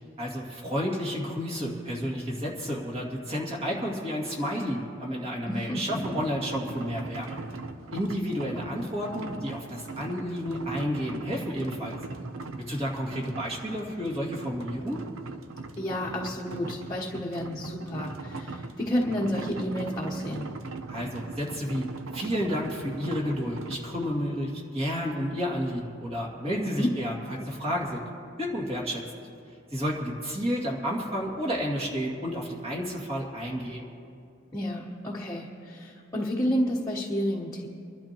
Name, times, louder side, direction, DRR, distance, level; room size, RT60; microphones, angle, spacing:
voice 1, 0.2-7.4 7.9-11.9 12.7-15.0 20.9-21.9 22.1-28.0 28.4-29.0 29.7-33.9, equal, 30° right, -2 dB, 2.4 m, -31 dB
voice 2, 5.5-6.2 15.8-20.5 26.8-26.9 34.5-37.7, equal, 15° left, -3 dB, 1.1 m, -30 dB
sound 1, 5.9-24.1, right 3 dB, 85° right, 0.7 m, -40 dB
25.5 x 12.0 x 3.0 m, 2.5 s
head